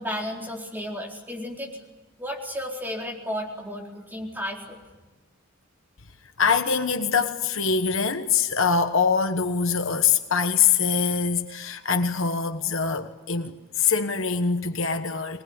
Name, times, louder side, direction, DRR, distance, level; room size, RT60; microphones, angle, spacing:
voice 1, 0.0-1.7 2.2-4.8, equal, 10° right, 4.3 m, -33 dB
voice 2, 6.4-15.4, left 6 dB, 60° left, 1.3 m, -24 dB
24.5 x 19.5 x 9.7 m
head